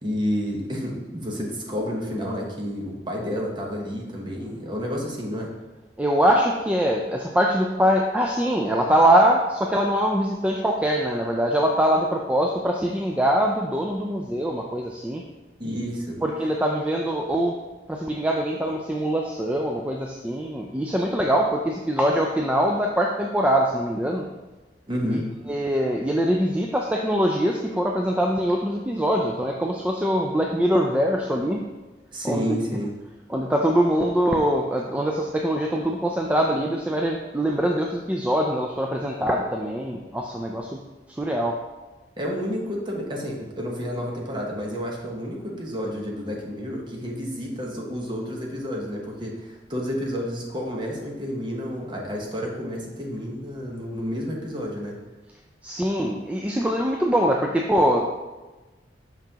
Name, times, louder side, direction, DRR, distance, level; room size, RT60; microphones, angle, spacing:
voice 1, 0.0-5.5 15.6-16.2 24.9-25.4 32.1-33.1 42.2-55.0, equal, 25° right, -1 dB, 1.0 m, -30 dB
voice 2, 6.0-15.2 16.2-17.6 17.9-24.2 25.0-25.2 25.5-31.6 32.2-32.6 33.3-40.8 41.1-41.6 55.6-58.0, equal, 10° right, 0 dB, 0.4 m, -23 dB
5.9 x 5.5 x 2.9 m, 1.2 s
head